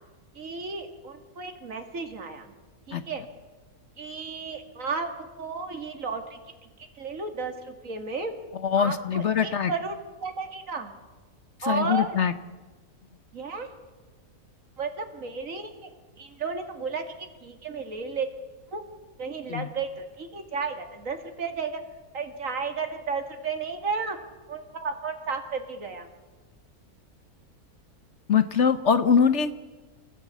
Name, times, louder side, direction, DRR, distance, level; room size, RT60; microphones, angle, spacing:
voice 1, 0.3-2.5 2.9-3.2 4.0-6.4 6.9-8.3 8.8-10.9 11.6-12.2 13.3-13.7 14.8-15.9 16.2-17.1 17.4-18.3 18.7-18.8 19.2-21.8 22.1-24.2 24.5-26.1, right 4 dB, 55° right, 6 dB, 2.6 m, -33 dB
voice 2, 8.6-9.7 11.6-12.3 19.5-19.7 28.3-29.5, left 7 dB, 55° left, 12 dB, 1.0 m, -22 dB
28.0 x 15.0 x 8.2 m, 1.3 s
omnidirectional pair, 1.6 m